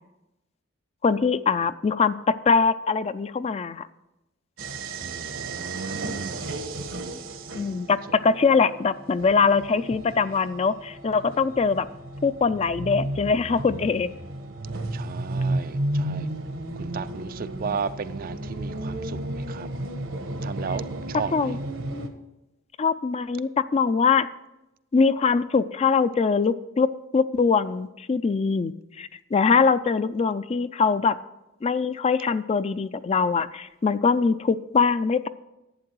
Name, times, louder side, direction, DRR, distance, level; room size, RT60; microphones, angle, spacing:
voice 1, 1.0-3.9 7.5-11.9 12.2-14.1 21.3-21.6 21.9-22.1 22.8-24.3 24.9-31.2 31.6-35.3, left 5 dB, 30° left, 0.3 m, -22 dB
sound 1, 4.6-22.1, right 1 dB, 75° right, 1.2 m, -33 dB
voice 2, 5.0-6.4 14.9-16.3 16.8-19.7 20.4-21.6, right 6 dB, 45° right, 0.4 m, -35 dB
11.0 x 8.7 x 4.6 m
head